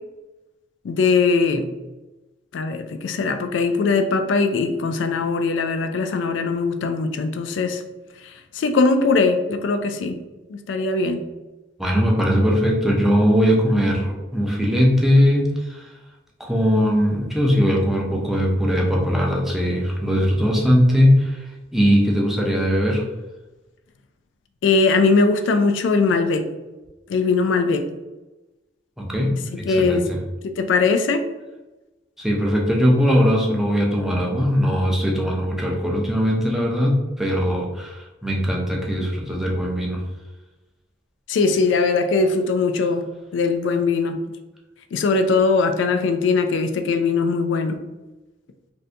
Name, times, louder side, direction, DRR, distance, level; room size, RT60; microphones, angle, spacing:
voice 1, 0.8-1.7 2.5-7.8 8.5-10.2 10.5-11.2 24.6-26.5 27.1-27.9 29.7-30.0 30.4-31.2 41.3-43.1 43.3-44.2 44.9-47.8, left 4 dB, 80° left, 8 dB, 0.3 m, -20 dB
voice 2, 11.8-15.9 16.4-23.0 29.0-30.2 32.2-40.0, equal, ahead, -2 dB, 0.5 m, -20 dB
2.6 x 2.6 x 3.3 m, 1.1 s
head